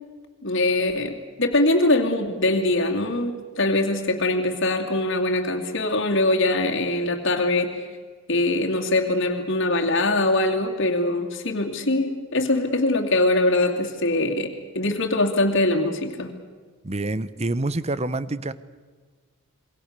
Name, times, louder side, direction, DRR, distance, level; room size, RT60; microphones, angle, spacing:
voice 1, 0.4-7.8 8.3-16.4, left 2 dB, 60° left, 1 dB, 2.7 m, -22 dB
voice 2, 16.8-18.5, right 2 dB, 30° right, 16 dB, 0.9 m, -27 dB
27.5 x 23.5 x 6.8 m, 1.5 s
head